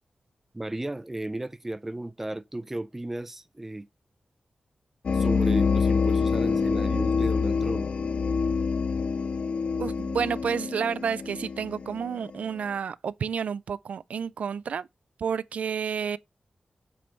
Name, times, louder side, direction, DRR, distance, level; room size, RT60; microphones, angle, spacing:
voice 1, 0.5-3.9 5.1-7.9, right 1 dB, 15° right, 0.4 m, -34 dB
sound 1, 5.0-12.4, left 5 dB, 55° left, 0.3 m, -26 dB
voice 2, 9.8-14.9 15.2-16.2, right 7 dB, 85° right, 0.3 m, -30 dB
7.6 x 3.4 x 4.3 m
wide cardioid pair, 130°, 2 cm